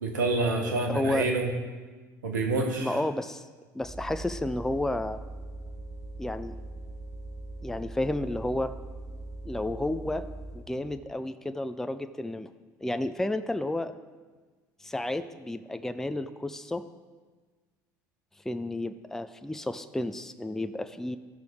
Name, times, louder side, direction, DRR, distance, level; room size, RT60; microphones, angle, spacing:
voice 1, 0.0-1.5 2.2-3.0, right 3 dB, 80° right, 3 dB, 1.3 m, -27 dB
voice 2, 0.6-1.3 2.8-3.4 3.7-5.2 6.2-6.6 7.6-8.7 9.4-10.3 10.5-12.5 12.8-13.9 14.8-16.8 18.5-21.2, left 1 dB, 5° left, 10 dB, 0.5 m, -31 dB
sound 1, 3.8-10.7, right 2 dB, 30° left, 1.2 m, -41 dB
14.5 x 6.0 x 3.6 m, 1.4 s
hypercardioid pair, 65°, 10 cm